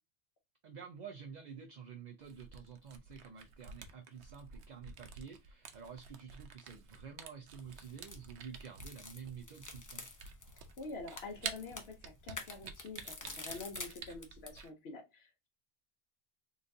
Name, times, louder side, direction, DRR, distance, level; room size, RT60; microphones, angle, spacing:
voice 1, 0.6-10.1, right 7 dB, 55° right, 0.5 m, -50 dB
Camera, 2.2-14.7, right 6 dB, 90° right, 0.9 m, -49 dB
sound 1, 7.6-14.6, left 2 dB, 25° left, 0.5 m, -49 dB
voice 2, 10.8-15.5, left 3 dB, 75° left, 0.9 m, -47 dB
3.9 x 2.6 x 2.6 m
omnidirectional pair, 1.1 m